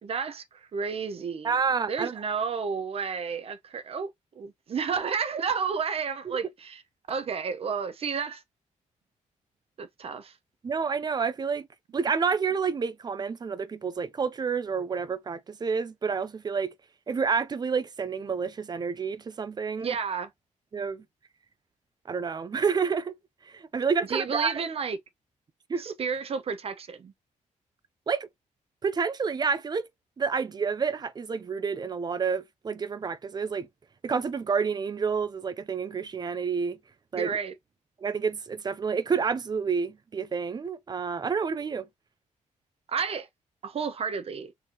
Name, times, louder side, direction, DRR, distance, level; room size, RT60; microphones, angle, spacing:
voice 1, 0.0-1.6 1.9-4.1 4.4-6.8 7.1-8.4 9.8-10.3 19.8-20.3 24.1-25.0 25.8-27.1 37.1-37.5 42.9-43.3 43.6-44.5, right 6 dB, 45° right, 0.9 m, -31 dB
voice 2, 1.4-2.1 6.3-6.4 10.6-11.7 11.9-16.7 17.1-19.9 20.7-21.0 22.1-23.1 23.5-24.6 25.7-25.9 28.1-28.3 28.8-29.9 30.2-33.7 34.0-36.8 37.1-37.3 38.0-41.9, right 5 dB, 30° right, 0.6 m, -29 dB
4.6 x 3.5 x 2.9 m
cardioid pair, 120°, 13 cm